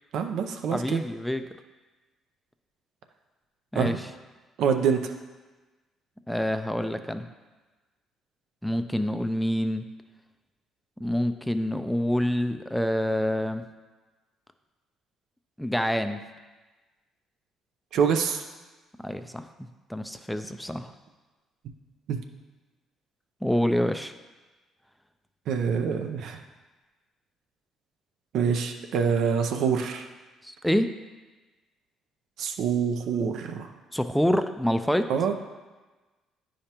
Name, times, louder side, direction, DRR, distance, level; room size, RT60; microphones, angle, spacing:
voice 1, 0.1-1.0 3.7-4.0 4.6-5.1 17.9-18.4 22.1-22.2 25.5-26.4 28.3-30.1 32.4-33.7 35.1-35.3, right 6 dB, 70° right, 6 dB, 0.6 m, -26 dB
voice 2, 0.7-1.4 3.7-3.9 6.3-7.3 8.6-9.8 11.0-13.6 15.6-16.2 19.0-19.4 19.9-20.9 23.4-24.1 30.4-30.9 33.9-35.1, equal, 5° left, 8 dB, 0.4 m, -26 dB
9.4 x 5.1 x 2.9 m, 1.2 s
supercardioid pair, 70°, 0 cm